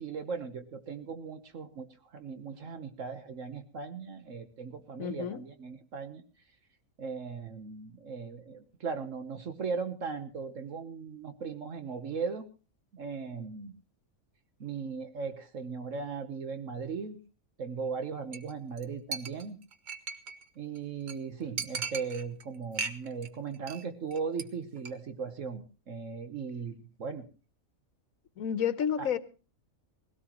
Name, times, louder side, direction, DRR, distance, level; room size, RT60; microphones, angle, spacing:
voice 1, 0.0-6.2 7.0-12.4 12.9-13.8 14.6-17.2 17.6-19.6 20.5-27.3 29.0-29.1, right 5 dB, 65° right, 8 dB, 1.4 m, -38 dB
voice 2, 5.0-5.4 28.4-29.2, left 8 dB, 80° left, 14 dB, 1.4 m, -30 dB
Chink clink, 18.3-18.5 18.8-18.9 19.1-20.4 20.8-20.9 21.1-21.2 21.6-22.4 22.7-23.3 23.5-23.8 24.1-24.4 24.8-24.9, right 5 dB, 40° right, 0.9 m, -37 dB
19.5 x 17.0 x 3.0 m, 0.34 s
omnidirectional pair, 1.4 m